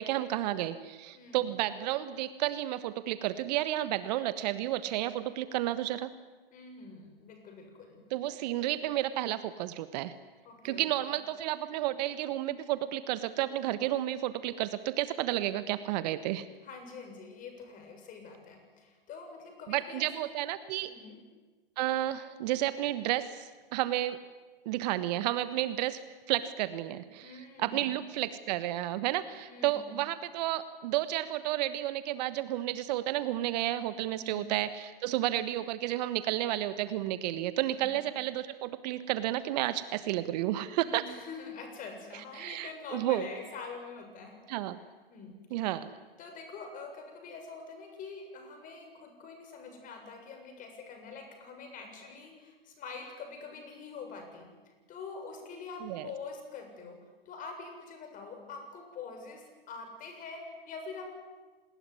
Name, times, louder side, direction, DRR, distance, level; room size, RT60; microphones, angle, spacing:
voice 1, 0.0-6.1 8.1-10.1 10.6-16.5 19.7-20.9 21.8-24.2 24.6-26.0 26.3-41.0 42.4-43.2 44.5-44.8 45.5-45.9 55.8-56.1, right 14 dB, 45° right, 13 dB, 1.4 m, -31 dB
voice 2, 1.1-1.5 6.5-8.0 10.4-11.0 16.6-20.1 20.9-21.2 27.2-27.9 29.5-29.9 34.1-34.5 37.7-37.9 40.8-44.4 45.1-45.3 46.2-57.0 57.3-61.1, left 4 dB, 30° left, 5 dB, 7.3 m, -45 dB
27.0 x 20.5 x 9.9 m, 1.3 s
hypercardioid pair, 120°, 29 cm